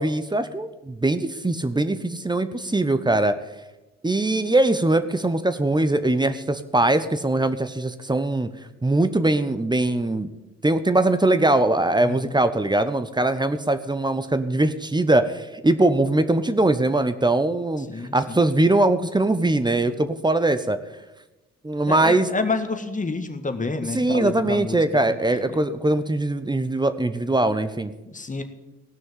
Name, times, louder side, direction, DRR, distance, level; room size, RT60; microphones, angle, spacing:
voice 1, 0.0-3.4 4.0-8.5 8.8-10.3 10.6-17.9 18.1-20.8 21.6-22.3 23.9-27.9, right 2 dB, 15° right, 11 dB, 1.0 m, -21 dB
voice 2, 12.0-12.3 17.9-18.4 21.8-24.8 25.1-25.2 25.5-25.6 28.1-28.4, left 3 dB, 25° left, 8 dB, 1.6 m, -29 dB
17.0 x 6.2 x 8.6 m, 1.0 s
hypercardioid pair, 55°, 31 cm